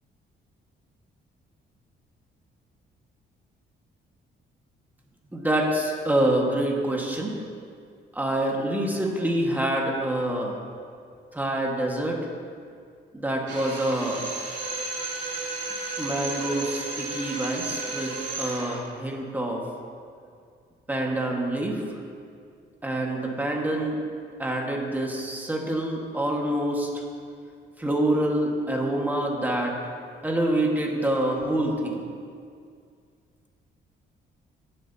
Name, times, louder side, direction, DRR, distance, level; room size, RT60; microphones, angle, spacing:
voice 1, 5.3-7.3 8.1-10.6 11.3-12.2 13.1-14.2 16.0-19.6 20.9-21.8 22.8-24.0 24.4-26.9 27.8-29.8 30.2-32.0, right 1 dB, 10° right, -1 dB, 1.7 m, -26 dB
Drill, 13.5-18.8, right 3 dB, 65° right, 2.8 m, -33 dB
16.0 x 7.4 x 2.9 m, 2.2 s
cardioid pair, 90°, 20 cm